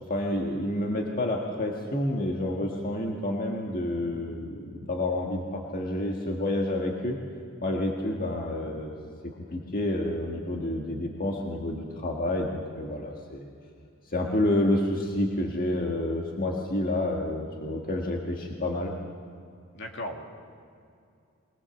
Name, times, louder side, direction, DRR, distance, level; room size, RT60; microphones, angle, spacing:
voice 1, 0.1-7.2 7.6-8.9 9.5-13.5 14.1-18.9, left 1 dB, 45° left, 0 dB, 1.7 m, -29 dB
voice 2, 19.7-20.2, left 1 dB, 60° left, 3 dB, 2.1 m, -37 dB
22.0 x 19.5 x 7.1 m, 2.4 s
head